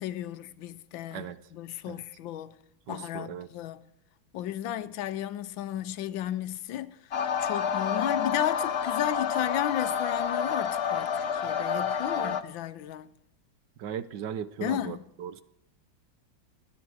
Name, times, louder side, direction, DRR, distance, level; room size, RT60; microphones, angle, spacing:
voice 1, 0.0-2.6 2.9-3.8 4.3-7.0 7.4-13.1 14.6-15.0, left 11 dB, 80° left, 1.5 m, -33 dB
voice 2, 1.1-1.4 1.9-2.0 2.9-3.5 12.1-12.4 13.8-15.4, right 8 dB, 70° right, 1.4 m, -38 dB
sound 1, 7.1-12.4, left 7 dB, 55° left, 0.7 m, -29 dB
29.5 x 10.5 x 4.8 m
omnidirectional pair, 2.1 m